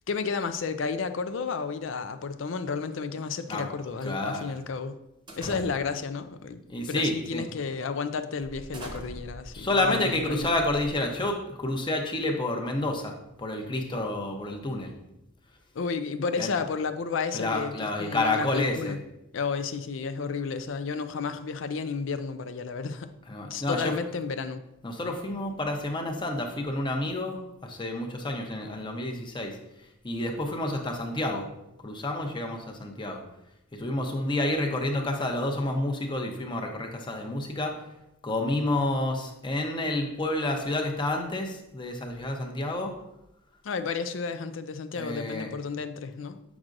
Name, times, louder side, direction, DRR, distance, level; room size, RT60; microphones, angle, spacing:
voice 1, 0.1-5.0 5.4-6.6 6.9-10.5 15.7-19.0 19.3-23.1 23.5-24.6 43.6-46.4, left 5 dB, 70° left, 10 dB, 0.5 m, -32 dB
voice 2, 3.5-4.5 5.5-5.6 6.7-7.4 9.5-13.1 13.4-14.9 16.4-16.5 17.3-19.0 23.2-24.1 24.8-29.5 30.0-31.4 31.8-33.2 33.7-37.7 38.2-42.9 44.9-45.5, left 2 dB, 25° left, 2 dB, 0.8 m, -29 dB
sound 1, 5.3-6.1 6.9-7.2 7.6-7.7 8.4-11.3, equal, 25° right, 0.9 m, -43 dB
7.3 x 6.1 x 2.6 m, 0.86 s
head